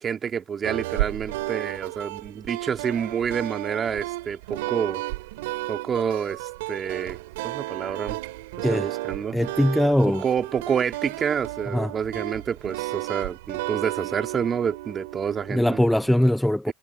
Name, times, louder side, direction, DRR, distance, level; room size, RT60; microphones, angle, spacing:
voice 1, 0.0-5.0 5.7-7.2 7.4-8.2 8.6-9.4 10.1-15.8 16.7-16.8, right 7 dB, 35° right, 2.3 m, -28 dB
sound 1, 0.6-16.1, right 20 dB, 80° right, 2.4 m, -33 dB
voice 2, 9.3-10.2 11.7-11.9 15.5-16.7, left 1 dB, 5° left, 0.5 m, -21 dB
hypercardioid pair, 90°, 0 cm